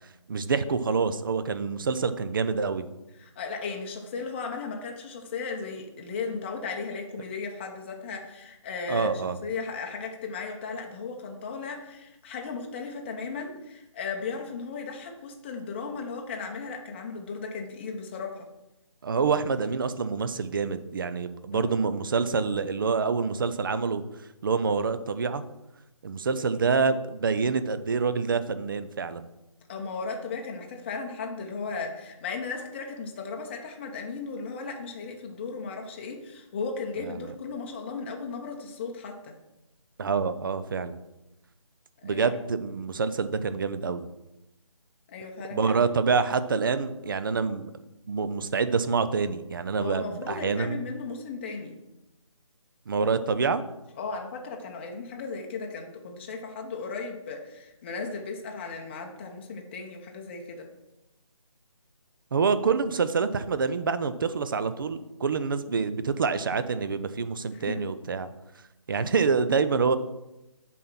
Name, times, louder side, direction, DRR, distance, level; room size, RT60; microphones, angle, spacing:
voice 1, 0.3-2.9 8.9-9.4 19.0-24.0 24.4-25.4 26.0-29.3 37.2-37.3 40.0-41.0 42.0-44.1 45.5-47.6 48.1-50.8 52.9-53.6 62.3-68.3 68.9-70.0, right 5 dB, 40° right, 13 dB, 0.5 m, -26 dB
voice 2, 3.2-9.1 9.4-18.5 21.5-21.7 29.7-39.3 42.0-42.3 45.1-45.7 49.8-51.8 54.0-60.7 67.5-67.8, left 4 dB, 20° left, 2 dB, 0.7 m, -36 dB
7.2 x 4.2 x 5.9 m, 0.94 s
figure-of-eight pair, 155°, 17 cm